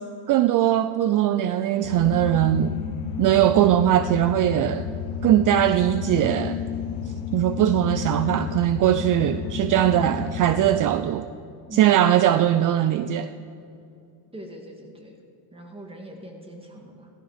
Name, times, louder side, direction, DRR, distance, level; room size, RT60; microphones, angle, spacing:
voice 1, 0.3-2.7 3.2-4.9 5.2-6.6 7.3-11.2 11.8-13.3, right 12 dB, 40° right, 12 dB, 0.5 m, -20 dB
sound 1, 1.8-10.8, left 7 dB, 85° left, 1.5 m, -31 dB
voice 2, 11.7-12.2 14.3-15.2 15.5-17.1, equal, 10° right, 2 dB, 2.2 m, -42 dB
15.0 x 14.5 x 5.0 m, 2.5 s
cardioid pair, 115°, 49 cm